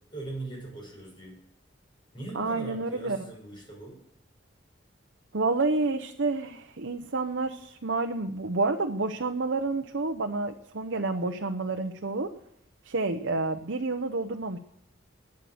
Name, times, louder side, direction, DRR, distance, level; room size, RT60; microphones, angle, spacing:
voice 1, 0.1-1.4 2.1-4.0, right 2 dB, 25° left, -2 dB, 6.3 m, -40 dB
voice 2, 2.3-3.2 5.3-12.3 12.8-14.6, right 3 dB, 75° right, 4 dB, 0.8 m, -29 dB
12.0 x 9.8 x 7.8 m, 0.73 s
head